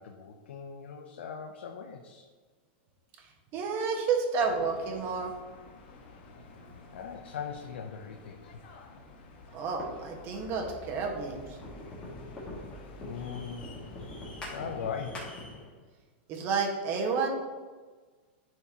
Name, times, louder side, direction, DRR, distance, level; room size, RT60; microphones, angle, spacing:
voice 1, 0.0-2.3 6.9-8.5 13.0-13.7 14.5-15.3, left 7 dB, 90° left, 3 dB, 0.7 m, -40 dB
voice 2, 3.5-5.3 9.5-11.6 16.3-17.3, right 5 dB, 40° right, 1 dB, 1.5 m, -30 dB
sound 1, 4.4-15.3, left 3 dB, 65° left, 1.3 m, -50 dB
sound 2, 9.8-15.7, left 2 dB, 20° left, 2.1 m, -44 dB
10.5 x 4.5 x 2.9 m, 1.4 s
supercardioid pair, 140°, 6 cm